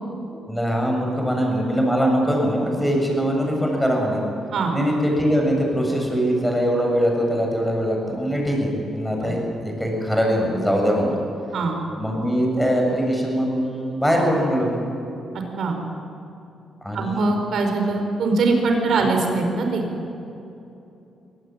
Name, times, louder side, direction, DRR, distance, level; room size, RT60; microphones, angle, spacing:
voice 1, 0.3-4.2 4.7-11.2 12.0-14.8 16.8-17.3 19.0-19.1, equal, 5° left, 0 dB, 7.4 m, -22 dB
voice 2, 15.3-15.8 16.9-19.8, right 3 dB, 65° right, 3 dB, 4.9 m, -22 dB
23.5 x 18.0 x 9.1 m, 2.8 s
cardioid pair, 100°, 0 cm